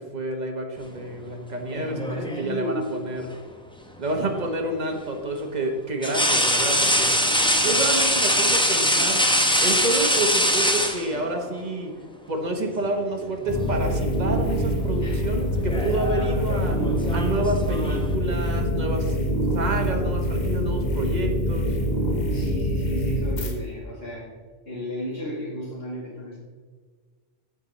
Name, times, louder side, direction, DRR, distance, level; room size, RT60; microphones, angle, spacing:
voice 1, 0.0-3.3 4.0-7.1 7.6-9.2 9.6-11.9 12.3-16.8 17.1-19.1 19.5-21.7, right 2 dB, 40° right, 3 dB, 1.3 m, -29 dB
voice 2, 1.6-3.1 7.0-7.8 15.0-15.2 15.6-15.9 22.3-24.3 24.7-26.4, equal, 60° left, -7 dB, 2.3 m, -34 dB
sound 1, 1.7-2.6 4.3-4.5 6.0-11.5 12.7-12.9 13.3-14.0 14.3-14.7 15.5-18.1, equal, 5° left, 0.7 m, -23 dB
sound 2, 13.5-23.5, equal, 40° left, 1.3 m, -25 dB
14.5 x 5.1 x 4.1 m, 1.5 s
omnidirectional pair, 1.1 m